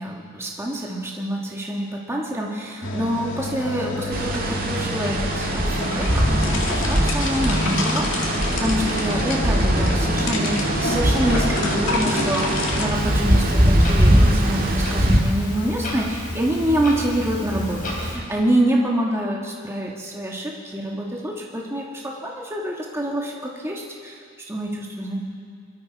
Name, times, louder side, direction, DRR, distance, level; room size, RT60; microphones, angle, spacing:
voice 1, 0.0-25.2, right 1 dB, 15° right, -2 dB, 1.5 m, -26 dB
sound 1, 2.8-12.9, left 2 dB, 70° left, 2.1 m, -29 dB
sound 2, 4.1-15.2, right 1 dB, 45° right, 1.9 m, -21 dB
Clock, 12.9-18.1, left 1 dB, 45° left, 4.3 m, -32 dB
23.5 x 13.5 x 4.5 m, 2.2 s
head